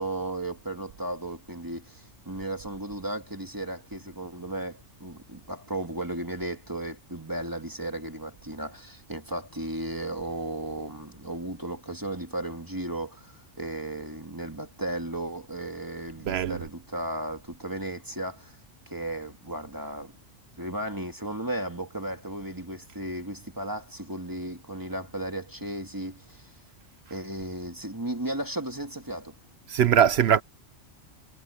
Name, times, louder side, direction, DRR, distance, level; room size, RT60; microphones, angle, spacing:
voice 1, 0.0-18.6 18.9-20.1 20.6-26.5 27.1-29.3, right 1 dB, 15° right, 1.9 m, -35 dB
voice 2, 16.2-16.6 29.7-30.4, right 9 dB, 65° right, 0.8 m, -21 dB
omnidirectional pair, 1.2 m